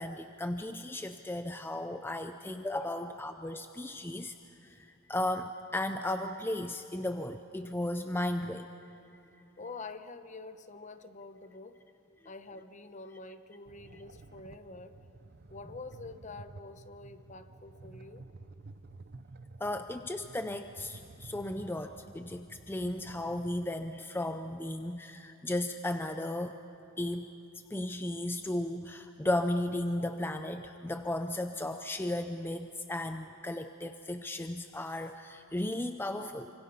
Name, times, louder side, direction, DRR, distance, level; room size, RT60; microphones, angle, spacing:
voice 1, 0.0-4.4 4.6-8.7 19.6-26.6 27.0-27.3 27.7-36.5, left 1 dB, 10° left, 8 dB, 0.5 m, -35 dB
voice 2, 9.6-11.8 12.2-15.0 15.5-18.2, left 3 dB, 35° left, 10 dB, 0.9 m, -47 dB
sound 1, 13.7-23.7, right 3 dB, 50° right, 0.7 m, -52 dB
27.5 x 25.0 x 5.6 m, 2.8 s
head